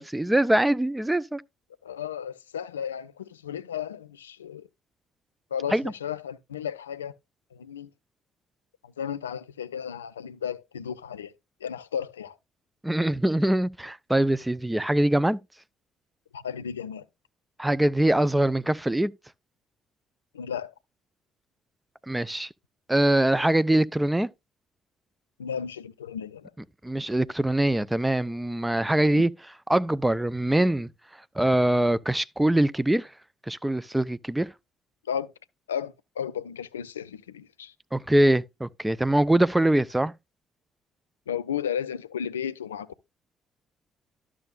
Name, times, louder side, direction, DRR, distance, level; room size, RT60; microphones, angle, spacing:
voice 1, 0.0-1.4 5.7-5.8 12.8-15.4 17.6-19.1 22.1-22.5 22.9-24.3 26.8-29.3 29.7-30.9 31.4-33.1 33.5-34.5 37.9-40.1, right 1 dB, 10° right, 0.4 m, -23 dB
voice 2, 1.8-4.7 5.5-7.1 7.5-7.9 8.8-11.3 11.6-12.4 16.3-17.0 20.3-20.7 25.4-26.5 29.0-29.2 35.1-35.3 35.7-37.7 41.3-43.1, left 8 dB, 80° left, 0.3 m, -34 dB
12.0 x 6.2 x 2.4 m
figure-of-eight pair, 45°, 0 cm